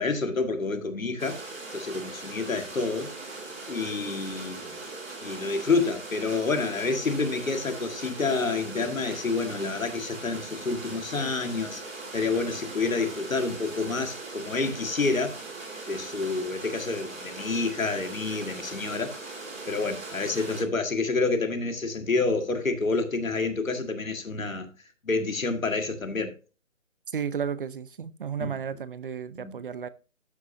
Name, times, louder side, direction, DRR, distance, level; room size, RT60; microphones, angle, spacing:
voice 1, 0.0-1.4 1.7-3.1 3.7-4.8 5.2-11.8 12.1-15.4 15.9-19.2 19.7-24.7 25.0-26.3 28.4-28.5 29.4-29.5, left 3 dB, 85° left, 2.0 m, -28 dB
sound 1, 1.2-20.6, right 3 dB, 70° right, 4.8 m, -40 dB
voice 2, 27.1-29.9, right 7 dB, 40° right, 0.7 m, -33 dB
13.0 x 6.0 x 2.7 m
figure-of-eight pair, 155°, 39 cm